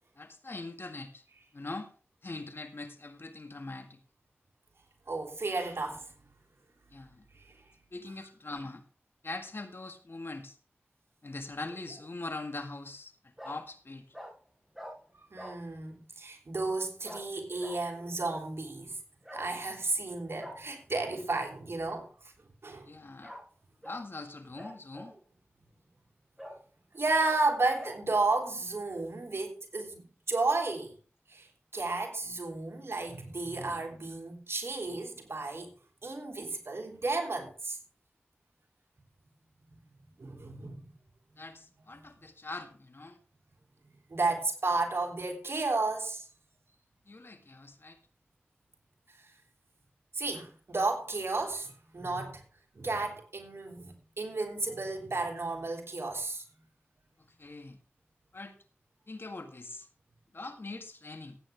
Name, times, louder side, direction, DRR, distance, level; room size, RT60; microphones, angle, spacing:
voice 1, 0.2-1.2 1.5-1.9 2.2-4.0 6.9-7.3 7.9-8.8 9.2-10.6 11.2-14.1 22.9-23.3 23.8-25.1 41.4-43.2 47.1-48.0 57.2-57.8 58.3-58.5 59.1-59.9 60.3-61.4, left 2 dB, 60° left, 1.9 m, -42 dB
voice 2, 5.1-6.1 15.3-18.9 19.3-22.1 22.6-22.9 26.9-30.9 31.3-31.5 31.7-35.7 36.0-37.8 40.2-40.8 44.1-46.2 50.1-52.4 52.7-56.4, right 3 dB, 70° right, 3.2 m, -32 dB
Bark, 11.7-12.1 13.4-13.6 14.1-14.3 14.7-14.9 15.4-15.6 17.0-17.2 17.6-17.8 19.2-19.5 20.4-20.6 20.9-21.1 23.2-23.4 23.8-24.0 24.6-25.2 25.7-25.8 26.4-26.6 27.2-27.4 27.8-28.0, equal, 5° right, 7.5 m, -45 dB
16.5 x 9.0 x 3.6 m
cardioid pair, 40°, 4 cm